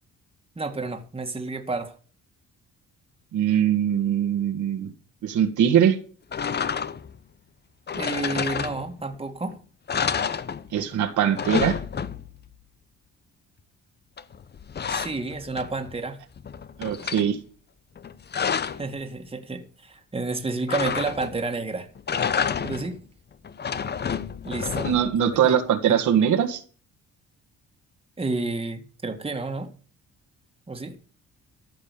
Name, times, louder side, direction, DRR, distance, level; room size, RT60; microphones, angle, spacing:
voice 1, 0.6-2.0 7.9-9.6 14.9-16.2 18.8-21.9 22.6-23.0 24.4-24.9 25.4-25.6 25.9-26.0 28.2-29.7 30.7-31.0, right 3 dB, 20° right, 4 dB, 1.9 m, -30 dB
voice 2, 3.3-4.9 5.2-6.0 10.7-11.8 16.8-17.4 24.8-26.6, right 9 dB, 75° right, 4 dB, 1.9 m, -22 dB
sound 1, 6.3-7.2 7.9-9.2 9.5-9.6 9.9-11.0 11.2-12.5 14.2-16.0 16.4-17.3 18.0-18.9 20.7-21.5 22.0-23.0 23.4-25.2, left 7 dB, 35° left, 0.8 m, -29 dB
14.0 x 5.4 x 8.4 m, 0.41 s
cardioid pair, 90°, 30 cm